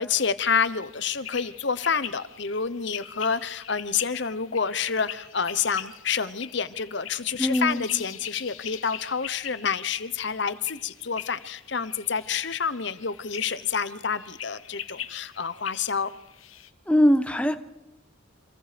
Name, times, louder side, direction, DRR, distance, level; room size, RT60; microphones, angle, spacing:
voice 1, 0.0-16.1, left 6 dB, 60° left, 14 dB, 0.9 m, -28 dB
sound 1, 0.5-16.7, left 10 dB, 90° left, 1.4 m, -42 dB
voice 2, 7.4-7.8 16.9-17.6, equal, 5° left, 8 dB, 1.1 m, -21 dB
29.5 x 26.0 x 5.2 m, 0.90 s
head